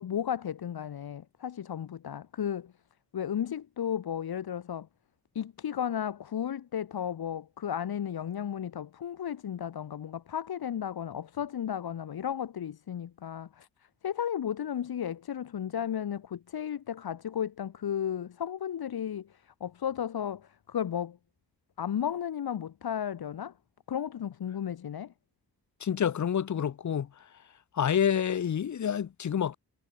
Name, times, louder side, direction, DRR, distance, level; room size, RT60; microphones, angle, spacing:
voice 1, 0.0-2.7 3.1-4.9 5.3-13.7 14.0-21.2 21.8-23.5 23.9-25.1, left 9 dB, 70° left, 1.5 m, -34 dB
voice 2, 25.8-27.1 27.7-29.6, left 8 dB, 50° left, 0.9 m, -28 dB
wide cardioid pair, 115°, 39 cm